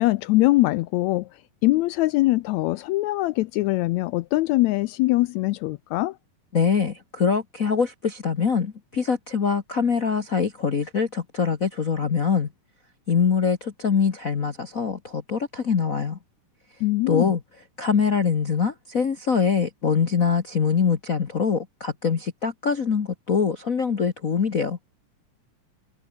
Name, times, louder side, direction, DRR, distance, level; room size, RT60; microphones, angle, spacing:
voice 1, 0.0-6.2 16.8-17.3, left 19 dB, 80° left, 1.6 m, -22 dB
voice 2, 6.5-12.5 13.1-16.2 17.1-17.4 17.8-24.8, left 6 dB, 65° left, 0.8 m, -23 dB
omnidirectional pair, 3.6 m